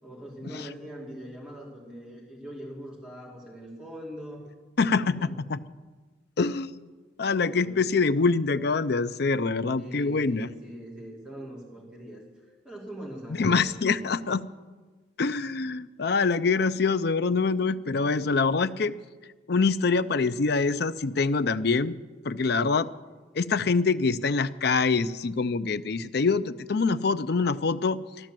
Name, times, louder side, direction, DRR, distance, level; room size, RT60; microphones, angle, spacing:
voice 1, 0.0-4.5 4.9-5.4 7.5-7.9 9.8-14.1, equal, 5° right, -4 dB, 2.7 m, -42 dB
voice 2, 4.8-5.6 6.4-6.7 7.2-10.5 13.4-14.4 15.2-18.9 19.5-21.9 22.2-22.9 23.4-28.0, left 4 dB, 55° left, 12 dB, 0.5 m, -25 dB
13.5 x 11.5 x 7.6 m, 1.3 s
head